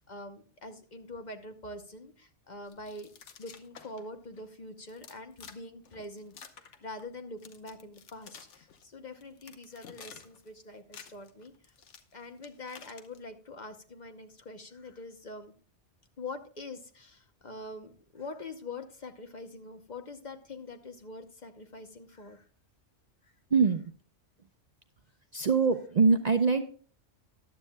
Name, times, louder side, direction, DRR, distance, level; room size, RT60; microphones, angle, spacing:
voice 1, 0.0-3.1 3.4-11.5 11.8-11.9 12.1-15.5 16.2-22.5 23.2-23.3, left 2 dB, 40° left, 7 dB, 0.9 m, -44 dB
sound 1, 2.7-4.1 4.3-4.4 4.9-5.6 5.8-7.1 7.4-8.8 9.2-10.5 10.8-13.2, left 7 dB, 80° left, 1.2 m, -51 dB
voice 2, 23.5-23.8 25.3-26.6, right 4 dB, 45° right, 7 dB, 0.6 m, -23 dB
14.5 x 11.0 x 2.2 m, 0.41 s
omnidirectional pair, 1.2 m